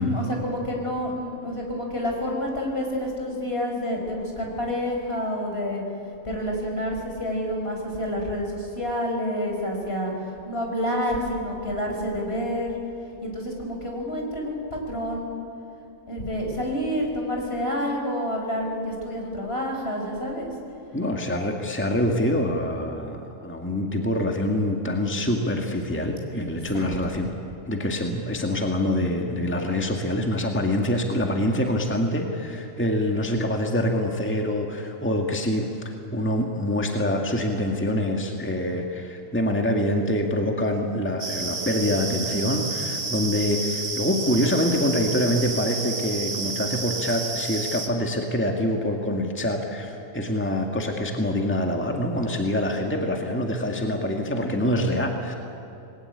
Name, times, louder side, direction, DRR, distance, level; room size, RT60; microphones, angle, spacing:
voice 1, 0.0-5.8 6.2-10.1 10.5-12.7 13.2-15.3 16.1-20.5 26.7-26.9, equal, 45° left, 1 dB, 5.3 m, -28 dB
voice 2, 20.9-27.3 27.7-55.3, left 1 dB, 10° left, 2 dB, 2.0 m, -25 dB
sound 1, 41.2-47.9, right 4 dB, 75° right, 2.5 m, -31 dB
26.0 x 20.5 x 9.9 m, 2.7 s
omnidirectional pair, 1.5 m